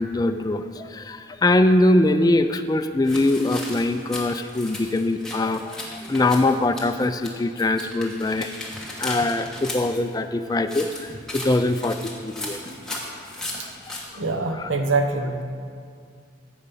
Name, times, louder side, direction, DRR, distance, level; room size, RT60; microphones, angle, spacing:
voice 1, 0.0-8.5 9.0-12.6 13.9-14.0 14.5-14.7, left 2 dB, 20° left, 9 dB, 0.3 m, -22 dB
sound 1, 3.0-7.3 7.6-10.0 10.6-14.0, left 1 dB, 5° left, 1.2 m, -36 dB
voice 2, 14.1-15.4, right 3 dB, 85° right, 4 dB, 1.0 m, -24 dB
15.0 x 5.1 x 5.6 m, 2.2 s
head